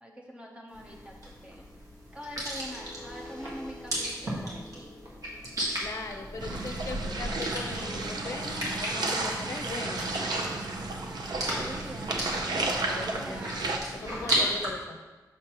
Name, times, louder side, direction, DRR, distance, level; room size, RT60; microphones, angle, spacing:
voice 1, 0.0-1.7 2.1-4.9 6.4-6.7 10.8-12.2 13.2-13.6 14.2-14.5, equal, 15° right, -1 dB, 0.7 m, -44 dB
sound 1, 0.7-14.7, right 1 dB, 55° right, 1.6 m, -36 dB
sound 2, 2.3-8.3, left 1 dB, 15° left, 1.2 m, -50 dB
voice 2, 5.8-10.1 12.5-13.6 13.9-15.0, left 3 dB, 50° left, 4 dB, 0.6 m, -39 dB
sound 3, 6.4-13.8, right 2 dB, 90° right, 0.7 m, -32 dB
6.4 x 6.3 x 3.0 m, 1.2 s
wide cardioid pair, 175°, 7 cm